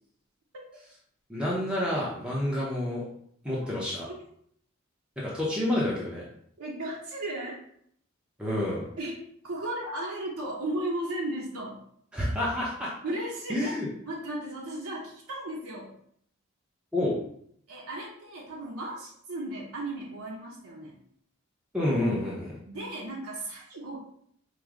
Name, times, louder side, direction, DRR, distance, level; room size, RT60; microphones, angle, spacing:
voice 1, 1.3-3.0 3.4-4.1 5.2-6.3 8.4-8.9 12.1-12.9 13.5-13.9 16.9-17.2 21.7-22.6, left 1 dB, 5° right, -6 dB, 0.6 m, -28 dB
voice 2, 6.6-7.6 9.0-9.2 9.4-11.8 13.0-13.8 14.1-16.0 17.7-21.0 22.7-24.0, right 1 dB, 85° right, -3 dB, 0.7 m, -35 dB
4.7 x 2.0 x 3.6 m, 0.67 s
head